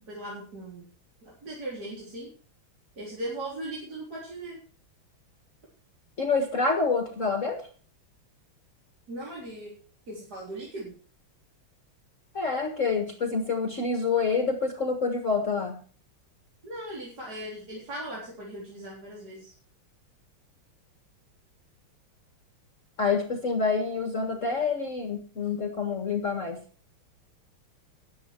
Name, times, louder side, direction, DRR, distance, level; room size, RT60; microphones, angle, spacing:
voice 1, 0.1-0.8 1.2-2.3 3.0-4.6 9.1-9.7 10.1-10.9 16.6-19.5, right 1 dB, 45° right, -5 dB, 4.4 m, -38 dB
voice 2, 6.2-7.6 12.3-15.8 23.0-26.6, left 4 dB, 40° left, 5 dB, 1.9 m, -27 dB
14.0 x 10.0 x 4.5 m, 0.41 s
omnidirectional pair, 2.3 m